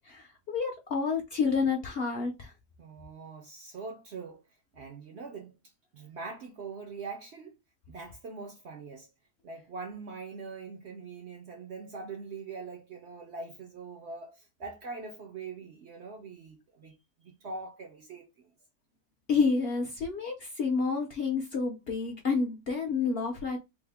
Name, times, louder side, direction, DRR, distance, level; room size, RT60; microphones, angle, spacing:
voice 1, 0.0-2.5 19.3-23.6, left 5 dB, 55° left, 0.7 m, -29 dB
voice 2, 2.8-4.4 4.7-5.6 5.9-7.6 7.9-9.1 9.4-18.5, right 4 dB, 60° right, 0.7 m, -43 dB
3.4 x 2.1 x 3.4 m
omnidirectional pair, 1.6 m